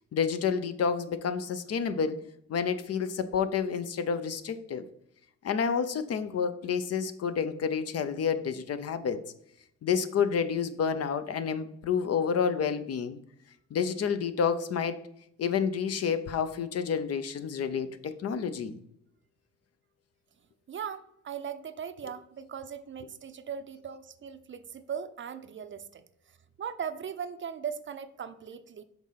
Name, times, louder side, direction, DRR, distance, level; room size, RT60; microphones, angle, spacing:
voice 1, 0.1-2.2 2.5-4.9 5.4-9.2 9.8-13.2 13.7-15.0 15.4-18.8, left 6 dB, 55° left, 11 dB, 0.6 m, -29 dB
voice 2, 20.7-26.0 26.6-28.8, right 7 dB, 40° right, 11 dB, 0.6 m, -39 dB
6.0 x 3.7 x 5.6 m, 0.74 s
cardioid pair, 90°, 30 cm